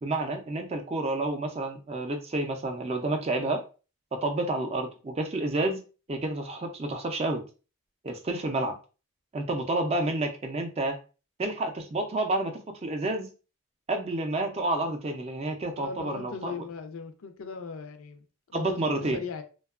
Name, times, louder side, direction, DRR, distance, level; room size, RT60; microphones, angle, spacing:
voice 1, 0.0-3.6 4.1-5.8 6.1-7.4 8.0-8.8 9.3-11.0 11.4-13.3 13.9-16.5 18.5-19.2, right 2 dB, 30° right, 0.3 m, -29 dB
voice 2, 15.8-19.4, left 5 dB, 70° left, 0.4 m, -39 dB
2.7 x 2.3 x 2.3 m
head